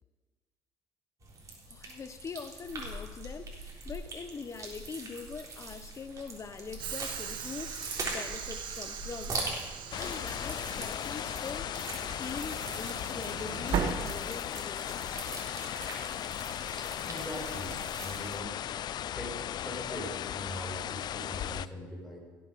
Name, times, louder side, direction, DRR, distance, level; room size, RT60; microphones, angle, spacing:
sound 1, 1.2-18.4, right 2 dB, 40° right, 3.7 m, -42 dB
voice 1, 1.7-9.6 9.9-11.7 12.2-15.2, left 5 dB, 35° left, 11 dB, 0.9 m, -43 dB
Train / Sliding door, 6.8-14.8, right 7 dB, 65° right, 1.3 m, -39 dB
sound 2, 9.9-21.7, left 11 dB, 55° left, 0.3 m, -37 dB
voice 2, 16.8-18.6 19.2-22.2, equal, ahead, -2 dB, 5.1 m, -42 dB
17.0 x 7.8 x 5.2 m, 1.3 s
supercardioid pair, 80°, 9 cm